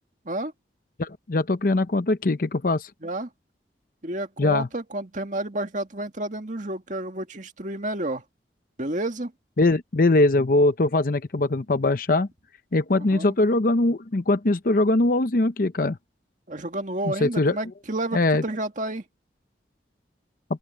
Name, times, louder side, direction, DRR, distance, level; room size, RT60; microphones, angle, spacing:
voice 1, 1.0-2.9 4.4-4.7 9.6-12.3 12.7-16.0 17.1-17.6 18.1-18.4, left 2 dB, 50° left, 0.7 m, -21 dB
voice 2, 4.0-8.2 8.8-9.3 12.9-13.3 16.5-19.0, right 1 dB, 45° right, 2.0 m, -30 dB
open air
head